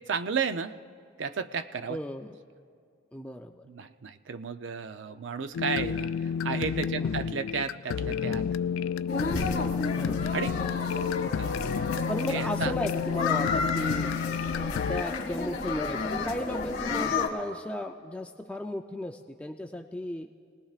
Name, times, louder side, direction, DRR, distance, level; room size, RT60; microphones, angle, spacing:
voice 1, 0.1-0.8 1.2-2.0 3.6-8.5 10.3-10.6 11.4-11.5 11.9-12.0 12.3-12.7, right 5 dB, 65° right, 10 dB, 0.5 m, -33 dB
voice 2, 1.9-2.4 3.1-3.7 7.0-7.3 9.9-10.3 12.1-14.1 14.6-20.3, left 1 dB, 5° left, 3 dB, 0.4 m, -35 dB
sound 1, 5.5-15.0, left 7 dB, 85° left, 0.3 m, -31 dB
sound 2, 9.1-17.3, left 4 dB, 45° left, 2.4 m, -31 dB
30.0 x 19.0 x 2.4 m, 2.3 s
head